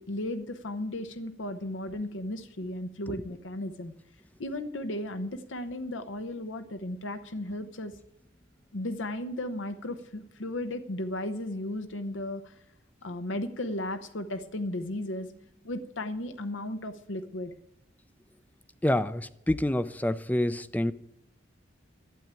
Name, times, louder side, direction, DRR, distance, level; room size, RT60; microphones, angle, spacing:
voice 1, 0.0-3.9 4.4-7.9 8.7-12.5 13.0-15.3 15.6-17.5, left 1 dB, 80° left, 8 dB, 0.9 m, -35 dB
voice 2, 18.8-20.9, left 1 dB, 10° left, 15 dB, 0.5 m, -27 dB
12.0 x 8.3 x 8.9 m, 0.85 s
head